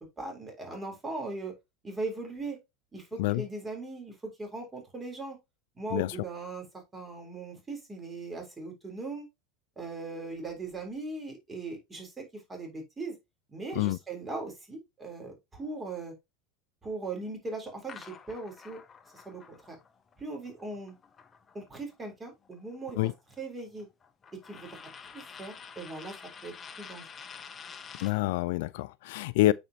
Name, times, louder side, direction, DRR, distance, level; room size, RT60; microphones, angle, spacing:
voice 1, 0.2-1.5 1.8-2.6 2.9-5.4 5.8-6.7 6.9-9.3 9.8-13.1 13.5-16.1 16.8-18.8 19.1-19.8 20.2-20.9 21.5-23.1 23.4-23.9 24.4-26.2 26.4-27.1 29.4-29.5, right 3 dB, 20° right, 3.3 m, -39 dB
sound 1, 17.9-21.9 22.3-28.2, left 6 dB, 30° left, 0.8 m, -49 dB
voice 2, 27.9-29.5, left 17 dB, 65° left, 0.3 m, -27 dB
8.9 x 4.4 x 2.7 m
hypercardioid pair, 85°, 0 cm